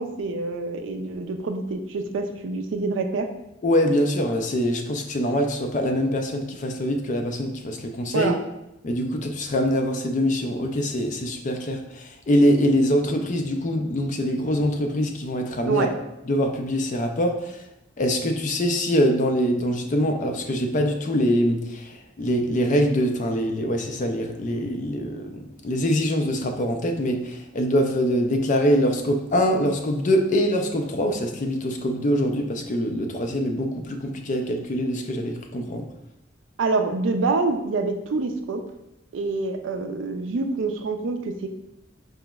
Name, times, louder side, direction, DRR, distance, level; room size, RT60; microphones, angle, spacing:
voice 1, 0.0-3.3 8.1-8.4 15.7-15.9 36.6-38.6 39.1-41.5, right 3 dB, 80° right, 6 dB, 0.4 m, -26 dB
voice 2, 3.6-8.3 8.8-15.9 16.3-17.5 18.0-35.8, equal, 40° left, 4 dB, 0.4 m, -24 dB
4.7 x 3.0 x 2.2 m, 0.90 s
head